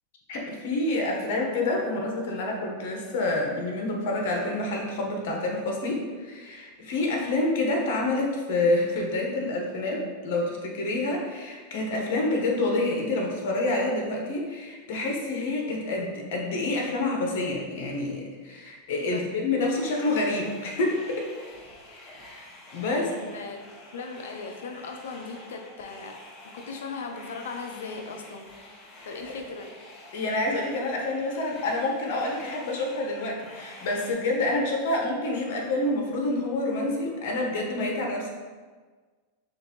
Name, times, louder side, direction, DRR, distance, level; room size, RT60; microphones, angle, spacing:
voice 1, 0.3-21.3 22.3-22.4 22.7-23.1 29.0-29.1 30.1-38.3, left 2 dB, 65° left, 0 dB, 1.0 m, -28 dB
voice 2, 19.0-19.7 22.9-23.6 23.9-26.2 26.5-28.5 29.1-29.7, left 4 dB, 85° left, 4 dB, 0.5 m, -38 dB
sound 1, 19.7-34.1, left 1 dB, 35° left, 1.0 m, -48 dB
6.3 x 2.6 x 2.9 m, 1.4 s
hypercardioid pair, 120°, 0 cm